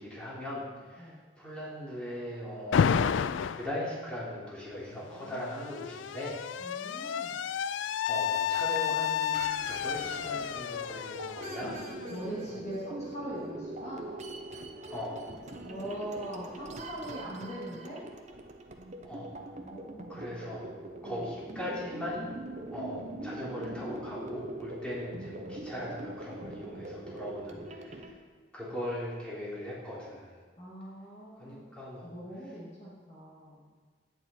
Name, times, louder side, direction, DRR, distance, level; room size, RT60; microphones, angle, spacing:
voice 1, 0.0-3.0 3.5-6.4 8.0-11.8 14.9-15.2 19.0-19.3 20.1-20.6 21.0-22.3 22.7-28.1 28.5-30.4 31.4-32.1, left 1 dB, 5° left, -8 dB, 3.2 m, -39 dB
Alarm, 2.7-3.7 4.9-12.6, left 8 dB, 75° left, 0.3 m, -31 dB
voice 2, 6.6-7.4 12.1-14.1 15.6-18.0 19.6-20.0 21.0-21.3 27.5-27.6 30.6-31.6 32.0-33.7, right 1 dB, 35° left, -7 dB, 2.3 m, -41 dB
sound 1, 9.3-28.1, right 2 dB, 35° right, 0.8 m, -42 dB
10.5 x 9.1 x 4.4 m, 1.5 s
head